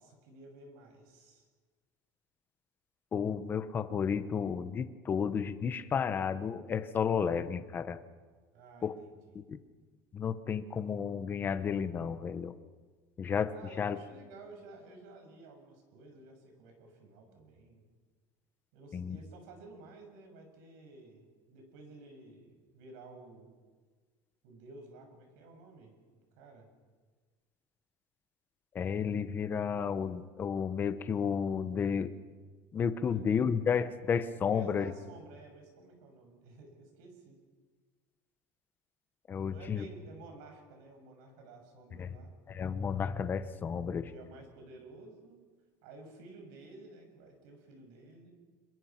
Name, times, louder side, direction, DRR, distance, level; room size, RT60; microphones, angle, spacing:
voice 1, 0.0-1.5 8.5-9.4 13.5-17.8 18.7-23.5 24.4-26.0 26.4-26.7 33.0-33.5 34.4-37.4 39.4-42.3 44.1-45.4 45.8-48.3, right 2 dB, 75° right, 4 dB, 6.7 m, -53 dB
voice 2, 3.1-8.0 8.8-8.9 9.5-9.6 10.1-12.5 13.2-14.0 18.9-19.2 28.7-32.1 32.7-34.9 39.3-39.8 42.0-42.1 42.5-44.1, left 7 dB, 20° left, 11 dB, 1.0 m, -32 dB
26.5 x 22.5 x 5.9 m, 1.4 s
cardioid pair, 165°, 9 cm